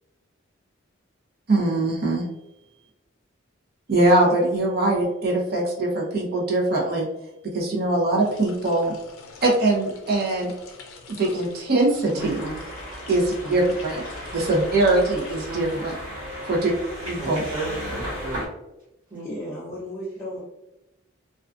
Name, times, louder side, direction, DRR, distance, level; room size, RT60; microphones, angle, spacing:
voice 1, 1.5-2.3 3.9-7.1 7.4-8.9 9.4-10.5 11.1-12.4 13.1-14.0 14.3-16.0 16.4-16.7 17.1-17.4, right 2 dB, 50° right, -2 dB, 0.6 m, -22 dB
sound 1, 8.1-16.5, left 4 dB, 85° left, 0.4 m, -45 dB
voice 2, 12.1-12.6 13.4-13.5 15.5-15.8 17.2-18.5 19.1-19.3, right 2 dB, 25° right, -10 dB, 1.1 m, -34 dB
sound 2, 12.2-18.5, equal, 90° right, 1.2 m, -35 dB
voice 3, 19.2-20.4, equal, 15° left, -8 dB, 0.4 m, -34 dB
2.3 x 2.3 x 2.4 m, 0.92 s
head